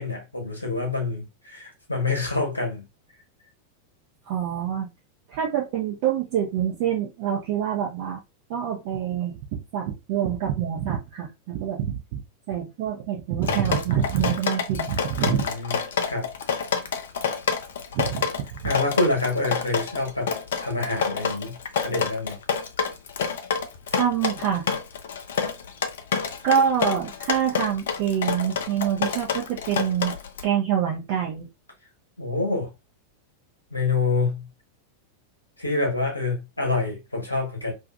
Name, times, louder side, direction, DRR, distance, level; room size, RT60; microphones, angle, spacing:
voice 1, 0.0-2.9 15.2-15.8 16.0-16.3 18.6-20.3 20.6-22.4 32.2-32.7 33.7-34.4 35.6-37.7, left 3 dB, 80° left, 1.0 m, -27 dB
voice 2, 4.3-4.9 5.3-8.2 8.5-12.2 12.5-15.5 17.9-18.2 23.9-24.7 26.4-30.2 30.4-31.5, right 9 dB, 45° right, 0.6 m, -26 dB
Drip, 13.4-30.4, left 6 dB, 60° left, 0.4 m, -28 dB
2.6 x 2.4 x 2.3 m
figure-of-eight pair, 90°, 0 cm